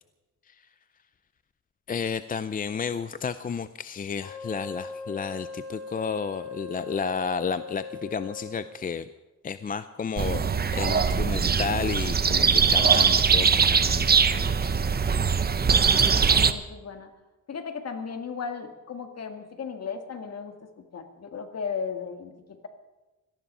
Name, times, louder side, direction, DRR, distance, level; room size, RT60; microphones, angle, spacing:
voice 1, 1.9-9.1 9.4-14.7, left 6 dB, 25° left, 13 dB, 0.4 m, -32 dB
Wind instrument woodwind instrument, 4.2-8.8, left 3 dB, 5° left, 3.7 m, -40 dB
sound 1, 10.2-16.5, right 6 dB, 30° right, 0.7 m, -21 dB
voice 2, 15.7-17.1 17.5-20.5 20.9-22.7, left 6 dB, 50° left, 6 dB, 1.8 m, -36 dB
18.0 x 14.0 x 5.5 m, 1.1 s
cardioid pair, 120°, 32 cm